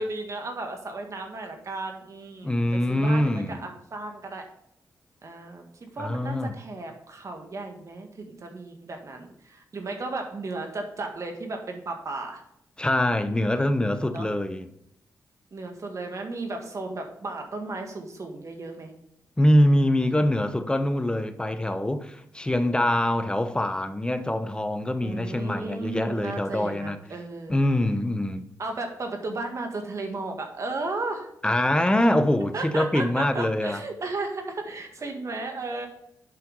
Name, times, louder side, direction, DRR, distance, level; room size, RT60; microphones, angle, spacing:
voice 1, 0.0-4.4 5.2-12.4 14.1-14.3 15.5-18.9 25.0-27.6 28.6-31.3 32.5-35.9, right 3 dB, 50° right, 1.8 m, -34 dB
voice 2, 2.4-3.6 6.0-6.6 12.8-14.7 19.4-27.0 27.5-28.5 31.4-33.8, left 1 dB, 15° left, 0.9 m, -24 dB
7.8 x 5.7 x 5.4 m
cardioid pair, 65°, 7 cm